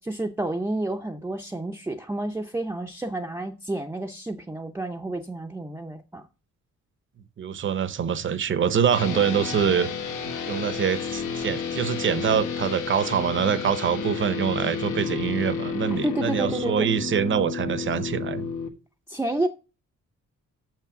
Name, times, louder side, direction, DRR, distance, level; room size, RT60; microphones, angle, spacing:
voice 1, 0.0-6.2 16.0-16.9 19.1-19.5, right 2 dB, 10° right, 0.5 m, -30 dB
voice 2, 7.4-9.9 10.5-18.5, right 8 dB, 40° right, 0.7 m, -25 dB
sound 1, 8.9-18.7, left 6 dB, 90° left, 1.5 m, -31 dB
6.6 x 5.9 x 6.8 m
wide cardioid pair, 155°, 30 cm